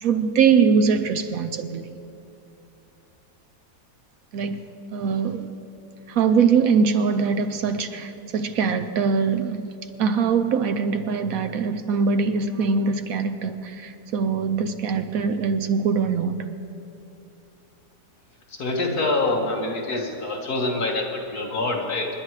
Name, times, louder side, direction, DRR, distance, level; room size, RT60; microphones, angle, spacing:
voice 1, 0.0-2.0 4.3-4.6 4.9-5.5 6.1-9.7 10.0-16.5, right 6 dB, 70° right, 1.0 m, -22 dB
voice 2, 18.6-22.1, left 2 dB, 70° left, 2.2 m, -25 dB
28.0 x 10.5 x 3.2 m
omnidirectional pair, 1.7 m